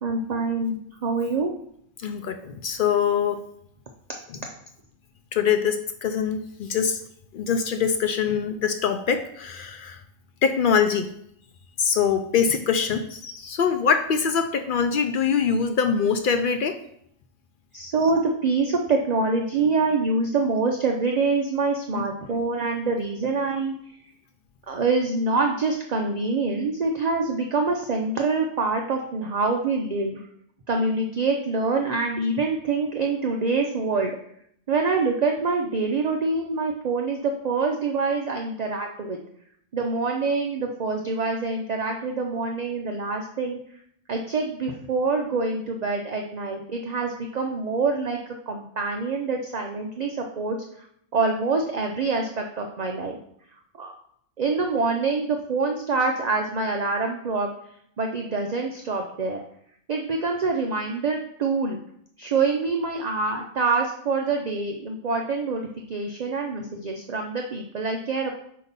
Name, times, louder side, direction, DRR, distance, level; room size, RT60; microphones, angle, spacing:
voice 1, 0.0-0.8 1.0-1.5 17.7-23.7 24.7-30.2 30.7-34.2 34.7-39.2 39.7-43.6 44.1-50.9 51.1-53.2 53.8-53.9 54.4-57.5 58.0-59.4 59.9-61.8 62.2-68.3, right 3 dB, 50° right, 2 dB, 0.5 m, -25 dB
voice 2, 2.0-3.4 5.3-7.0 7.3-10.0 10.4-11.1 11.8-16.8, left 6 dB, 70° left, 8 dB, 0.5 m, -23 dB
8.0 x 2.8 x 5.2 m, 0.69 s
omnidirectional pair, 1.4 m